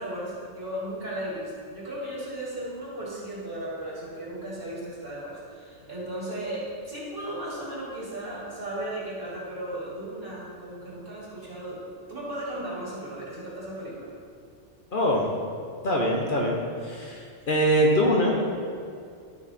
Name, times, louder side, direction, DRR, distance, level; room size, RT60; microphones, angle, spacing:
voice 1, 0.0-14.1, right 1 dB, 50° right, -7 dB, 2.5 m, -36 dB
voice 2, 14.9-15.3 15.8-18.3, equal, 50° left, -1 dB, 1.0 m, -23 dB
12.0 x 4.9 x 4.2 m, 2.4 s
omnidirectional pair, 1.2 m